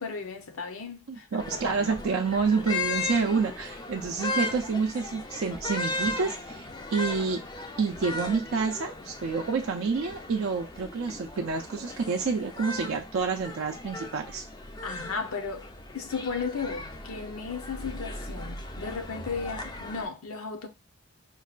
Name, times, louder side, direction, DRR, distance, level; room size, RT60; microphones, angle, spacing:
voice 1, 0.0-1.6 14.8-15.7 15.9-20.7, left 5 dB, 75° left, 0.7 m, -35 dB
voice 2, 1.1-7.4 7.8-14.4, right 5 dB, 65° right, 0.4 m, -28 dB
sound 1, 1.4-20.1, left 2 dB, 20° left, 0.3 m, -37 dB
4.5 x 2.2 x 2.3 m
head